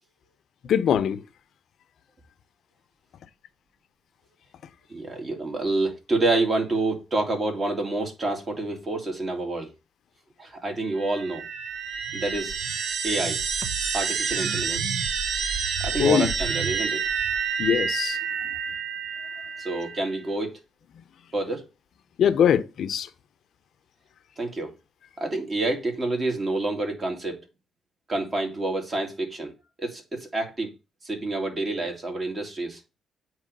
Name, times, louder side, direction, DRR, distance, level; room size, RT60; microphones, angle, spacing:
voice 1, 0.7-1.2 16.0-16.3 17.6-18.2 22.2-23.1, left 9 dB, 65° left, 0.6 m, -21 dB
voice 2, 4.9-9.7 10.4-11.4 12.1-12.6 13.0-13.4 13.9-14.9 15.8-17.0 19.6-20.6 21.3-21.6 24.4-24.7 25.2-27.4 28.1-29.5 29.8-30.7 31.0-33.0, right 2 dB, 35° right, 2.2 m, -28 dB
sound 1, 10.9-20.2, right 6 dB, 70° right, 0.8 m, -29 dB
8.5 x 3.1 x 5.2 m
cardioid pair, 90°, 0 cm